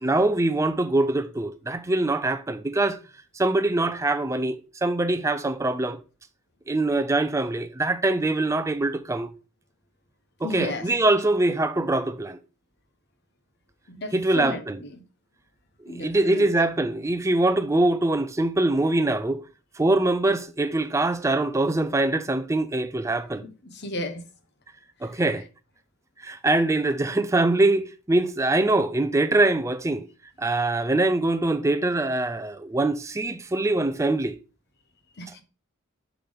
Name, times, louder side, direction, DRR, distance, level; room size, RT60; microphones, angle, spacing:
voice 1, 0.0-3.0 3.4-6.0 6.7-9.3 10.4-12.4 14.1-14.8 15.8-19.4 19.8-23.4 25.0-25.4 26.2-30.1 30.4-34.3, right 2 dB, 15° right, 0.4 m, -23 dB
voice 2, 10.4-10.9 13.9-15.0 15.9-16.5 23.4-24.2 35.2-35.4, left 1 dB, 55° left, 0.9 m, -34 dB
5.9 x 5.1 x 3.5 m
head